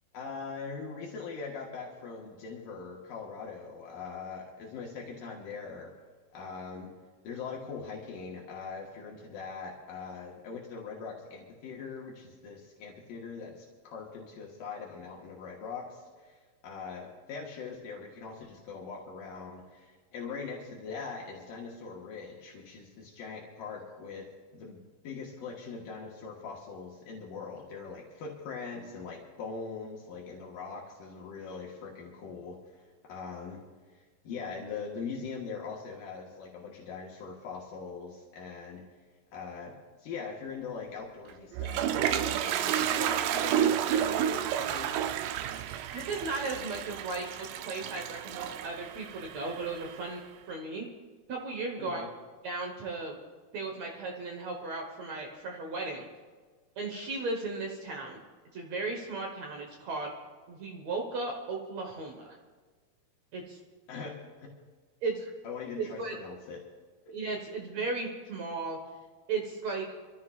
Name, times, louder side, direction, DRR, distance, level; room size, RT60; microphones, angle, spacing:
voice 1, 0.1-5.9 6.3-6.9 7.2-24.3 24.5-33.6 33.9-38.8 39.3-44.9 51.8-52.1 63.9-64.5 65.4-66.6 67.1-67.2, left 5 dB, 75° left, -2 dB, 2.9 m, -41 dB
Toilet flush, 41.3-50.2, right 10 dB, 80° right, 1.9 m, -31 dB
voice 2, 45.9-50.2 50.5-50.9 51.3-52.1 52.4-53.2 53.5-56.1 56.8-58.2 58.5-60.1 60.5-62.2 63.3-63.6 65.0-65.3 65.8-66.2 67.1-68.8 69.3-69.9, right 3 dB, 60° right, 1 dB, 2.0 m, -35 dB
26.0 x 14.0 x 2.4 m, 1.5 s
omnidirectional pair, 4.2 m